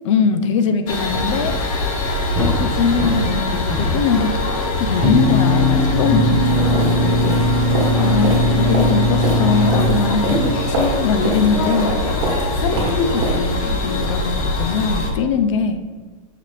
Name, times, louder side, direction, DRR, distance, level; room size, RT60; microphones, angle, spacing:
voice 1, 0.0-1.6 2.3-4.3 4.8-7.4 8.0-15.8, left 5 dB, 60° left, 9 dB, 0.4 m, -21 dB
sound 1, 0.9-15.1, left 1 dB, 80° left, 0.8 m, -23 dB
sound 2, 2.4-3.4 3.7-4.6 5.0-10.4, left 1 dB, ahead, 0.8 m, -19 dB
sound 3, 6.4-13.3, right 1 dB, 50° right, 1.1 m, -26 dB
5.6 x 2.4 x 3.2 m, 1.4 s
supercardioid pair, 175°, 18 cm